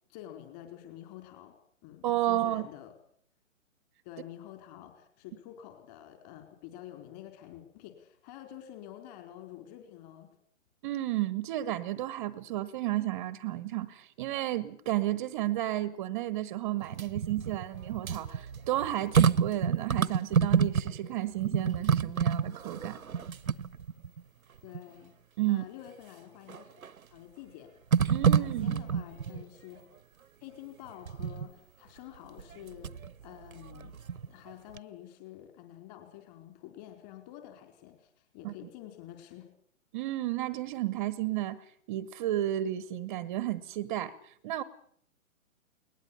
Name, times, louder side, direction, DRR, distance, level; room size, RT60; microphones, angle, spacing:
voice 1, 0.1-1.6 1.8-2.9 4.0-10.3 24.6-25.1 25.5-26.7 27.1-27.7 28.0-29.9 30.4-34.0 34.2-39.5, left 12 dB, 30° left, 4.5 m, -48 dB
voice 2, 2.0-2.7 10.8-23.0 25.4-25.6 28.1-28.8 38.4-38.5 39.9-44.6, right 14 dB, 25° right, 0.9 m, -32 dB
sound 1, 16.8-21.1 21.4-24.2 24.7-24.8 26.5-27.0 27.9-29.4 31.1-31.5 32.4-33.1 33.5-34.5 34.8-34.9, right 7 dB, 80° right, 0.9 m, -28 dB
21.5 x 19.5 x 8.7 m
figure-of-eight pair, 135°, 41 cm